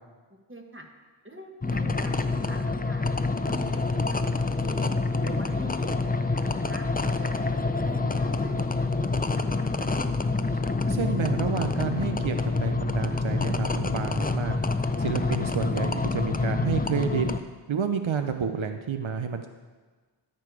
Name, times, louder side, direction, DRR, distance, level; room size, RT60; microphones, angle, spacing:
voice 1, 0.5-0.8 1.2-3.0 3.4-4.9 5.2-6.9 7.2-10.0, equal, 25° right, 2 dB, 1.5 m, -43 dB
sound 1, 1.6-17.4, left 3 dB, 20° left, 0.5 m, -27 dB
voice 2, 10.9-14.6 15.0-17.3 17.7-19.5, right 6 dB, 75° right, 6 dB, 0.7 m, -29 dB
13.5 x 6.8 x 4.8 m, 1.4 s
wide cardioid pair, 45°, 47 cm